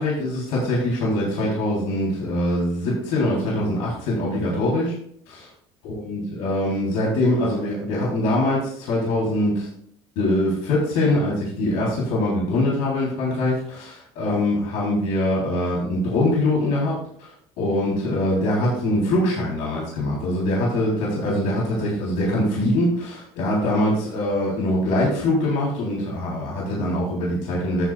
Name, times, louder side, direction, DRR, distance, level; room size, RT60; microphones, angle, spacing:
voice 1, 0.0-4.9 5.3-5.5 5.8-9.7 10.2-17.3 17.6-27.8, left 1 dB, 75° left, -5 dB, 3.7 m, -23 dB
13.5 x 7.3 x 2.4 m, 0.64 s
supercardioid pair, 75°, 13 cm